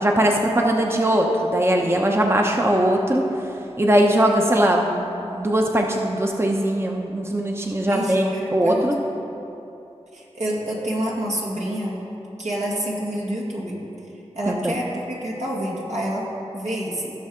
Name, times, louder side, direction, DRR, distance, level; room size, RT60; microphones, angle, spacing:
voice 1, 0.0-3.3 3.8-5.1 5.3-8.9 14.5-14.8, right 1 dB, 20° right, 1 dB, 0.8 m, -20 dB
voice 2, 7.9-8.9 10.1-12.0 12.4-13.8 14.3-17.1, right 1 dB, 75° right, -5 dB, 2.0 m, -28 dB
15.5 x 6.3 x 3.7 m, 2.9 s
cardioid pair, 45°, 11 cm